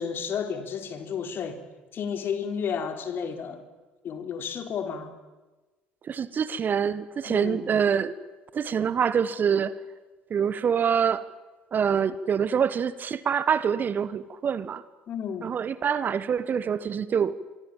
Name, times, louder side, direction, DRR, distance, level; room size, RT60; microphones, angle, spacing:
voice 1, 0.0-1.6 1.9-3.6 4.0-5.1 7.3-7.6 15.1-15.5, left 7 dB, 50° left, 3.7 m, -32 dB
voice 2, 6.1-8.1 8.5-9.7 10.3-11.3 11.7-14.8 15.4-17.4, right 7 dB, 40° right, 1.3 m, -25 dB
25.5 x 24.0 x 7.4 m
hypercardioid pair, 60°, 5 cm